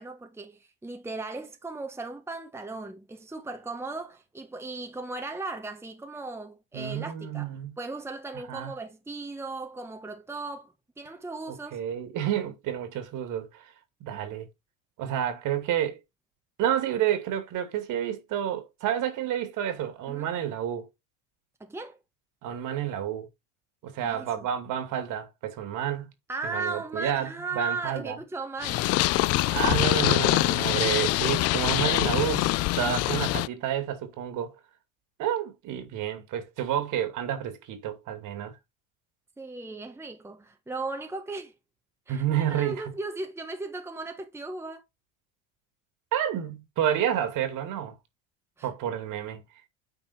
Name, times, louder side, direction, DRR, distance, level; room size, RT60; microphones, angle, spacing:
voice 1, 0.0-11.8 20.1-20.3 21.6-22.0 24.0-24.5 26.3-28.9 33.0-33.1 39.4-41.5 42.1-44.8 48.6-48.7, right 3 dB, 5° right, 1.2 m, -37 dB
voice 2, 6.7-7.8 8.5-8.7 11.5-13.6 14.0-14.5 15.0-16.0 16.6-20.9 22.4-23.3 23.8-26.1 26.4-28.2 29.5-34.5 35.2-38.5 42.1-42.8 46.1-47.9 48.6-49.4, right 10 dB, 55° right, 2.5 m, -30 dB
Purr, 28.6-33.5, left 18 dB, 40° left, 0.4 m, -24 dB
8.9 x 4.3 x 4.4 m
hypercardioid pair, 85°, 38 cm